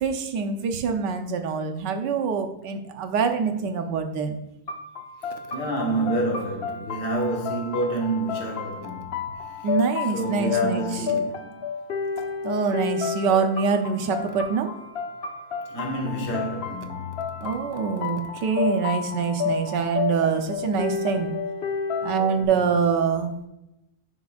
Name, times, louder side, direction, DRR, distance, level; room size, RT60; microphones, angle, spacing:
voice 1, 0.0-4.4 9.6-11.0 12.4-14.7 17.4-21.3 22.0-23.3, right 5 dB, 85° right, 1.4 m, -25 dB
sound 1, 4.7-22.4, left 5 dB, 60° left, 0.6 m, -31 dB
voice 2, 5.5-9.4 10.1-11.6 15.7-17.3, right 2 dB, 75° left, 2.0 m, -28 dB
9.8 x 6.0 x 2.4 m
omnidirectional pair, 1.8 m